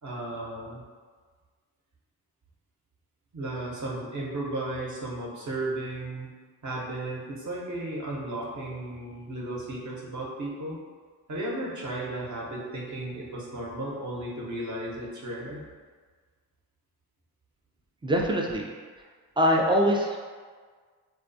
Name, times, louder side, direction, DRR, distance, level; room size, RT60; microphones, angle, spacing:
voice 1, 0.0-0.8 3.3-6.3 6.6-10.8 11.3-15.6, right 1 dB, 45° right, -4 dB, 0.8 m, -34 dB
voice 2, 18.0-19.1 19.4-20.2, equal, 15° right, 0 dB, 0.3 m, -24 dB
2.3 x 2.3 x 2.6 m, 1.5 s
supercardioid pair, 45°, 42 cm